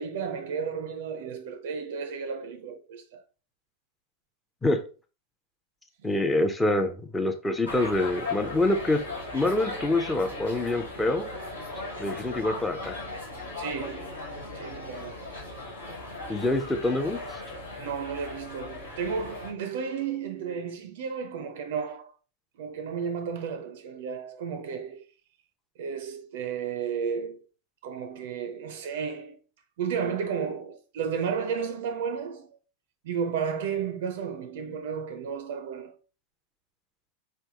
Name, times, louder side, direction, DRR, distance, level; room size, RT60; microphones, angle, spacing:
voice 1, 0.0-3.2 6.0-6.3 13.6-14.2 14.5-15.3 17.8-22.1 22.6-25.1 25.8-27.4 27.8-29.4 29.8-32.5 33.0-36.0, right 6 dB, 55° right, 0.5 m, -33 dB
voice 2, 6.0-9.0 9.3-11.3 12.0-13.0 16.3-17.2, left 2 dB, 10° left, 0.6 m, -26 dB
sound 1, 7.6-19.5, left 2 dB, 80° left, 1.6 m, -38 dB
4.6 x 3.3 x 2.8 m
figure-of-eight pair, 90°, 0 cm